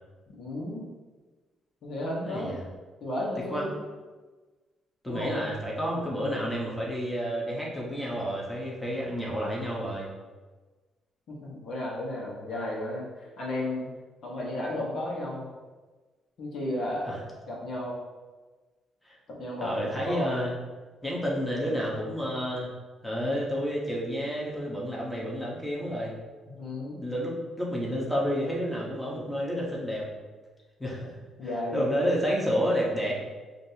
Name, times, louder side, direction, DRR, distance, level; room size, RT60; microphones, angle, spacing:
voice 1, 0.3-0.8 1.8-2.6 3.0-3.8 5.0-5.3 11.3-13.1 13.4-13.9 14.2-15.5 16.4-17.1 17.5-18.0 19.3-19.7 20.0-20.4 26.6-27.0 31.4-31.8, left 1 dB, 65° left, -4 dB, 1.1 m, -33 dB
voice 2, 2.3-2.6 3.5-3.6 5.0-10.1 17.1-17.2 19.0-19.2 19.6-20.5 21.0-22.7 23.0-26.2 27.0-30.1 30.8-31.1 31.4-33.1, equal, 5° left, -4 dB, 1.0 m, -30 dB
5.2 x 2.6 x 2.8 m, 1.3 s
cardioid pair, 90°, 0 cm